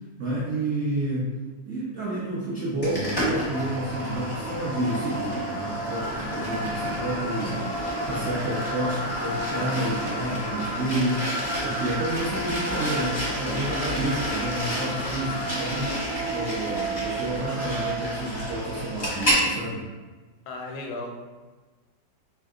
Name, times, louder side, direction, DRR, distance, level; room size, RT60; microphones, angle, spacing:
voice 1, 0.2-1.3 1.7-19.9, right 1 dB, 75° right, -7 dB, 0.6 m, -30 dB
sound 1, 2.8-19.5, equal, 25° left, 0.4 m, -29 dB
voice 2, 20.5-21.1, left 2 dB, 80° left, 1 dB, 1.2 m, -34 dB
3.4 x 2.7 x 2.4 m, 1.3 s
omnidirectional pair, 2.0 m